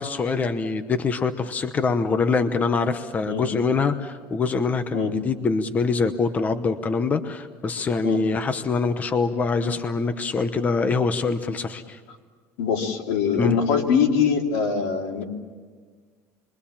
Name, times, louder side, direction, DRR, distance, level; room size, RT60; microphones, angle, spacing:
voice 1, 0.0-12.0 13.4-13.6, left 4 dB, 25° left, 10 dB, 1.0 m, -24 dB
voice 2, 12.6-15.2, left 6 dB, 90° left, 2 dB, 3.1 m, -23 dB
28.0 x 23.0 x 7.3 m, 1.5 s
cardioid pair, 150°, 7 cm